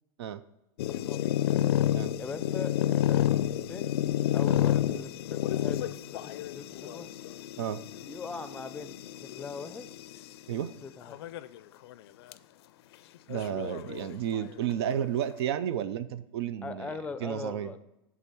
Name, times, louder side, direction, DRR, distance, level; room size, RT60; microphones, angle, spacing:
sound 1, 0.8-10.2 11.0-11.6 11.9-12.0 12.3-12.4 13.3-14.4, left 12 dB, 85° left, 0.4 m, -30 dB
voice 1, 0.9-1.2 2.2-3.2 3.5-4.0 4.3-7.1 8.0-9.9 10.8-11.2 16.6-17.8, left 4 dB, 10° left, 12 dB, 0.5 m, -41 dB
voice 2, 13.3-16.9 17.2-17.7, right 10 dB, 80° right, 14 dB, 0.4 m, -32 dB
8.4 x 3.7 x 6.0 m, 0.90 s
supercardioid pair, 130°, 13 cm